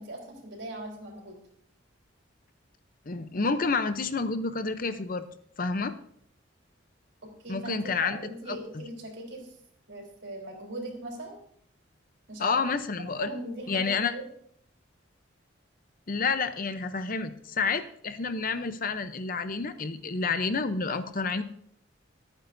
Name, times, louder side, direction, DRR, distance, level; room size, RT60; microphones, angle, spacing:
voice 1, 0.0-1.4 7.2-9.5 9.9-11.4 12.3-12.6 13.2-14.2, right 1 dB, 70° right, 0 dB, 4.0 m, -39 dB
voice 2, 3.1-5.3 5.6-5.9 7.5-8.2 8.5-8.6 12.4-13.3 13.7-14.1 16.1-21.4, left 4 dB, 45° left, 10 dB, 0.7 m, -29 dB
24.0 x 9.2 x 2.7 m, 0.66 s
head